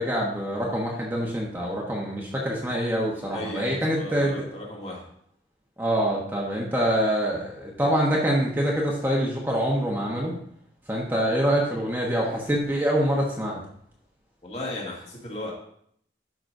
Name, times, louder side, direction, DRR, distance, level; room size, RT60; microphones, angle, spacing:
voice 1, 0.0-4.4 5.8-10.3 10.9-13.6, equal, 10° right, -3 dB, 1.1 m, -25 dB
voice 2, 3.3-5.1 14.4-15.5, left 1 dB, 35° left, -4 dB, 2.5 m, -35 dB
12.5 x 5.9 x 2.7 m, 0.67 s
head